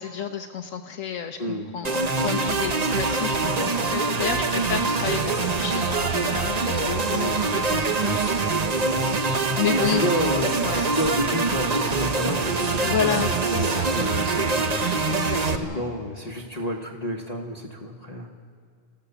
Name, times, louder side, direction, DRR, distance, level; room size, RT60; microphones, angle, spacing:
voice 1, 0.0-1.4 1.7-8.2 9.6-10.3 10.6-10.9 12.8-14.0 15.1-15.8, left 8 dB, 85° left, 3 dB, 1.2 m, -31 dB
sound 1, 1.8-15.6, right 4 dB, 35° right, 0.9 m, -24 dB
sound 2, 8.1-8.7 10.3-11.4 12.4-14.2, right 1 dB, 75° right, 4.3 m, -42 dB
voice 2, 9.9-14.9 15.4-18.3, equal, 30° left, 1 dB, 1.3 m, -30 dB
26.0 x 14.5 x 7.0 m, 2.1 s
omnidirectional pair, 1.3 m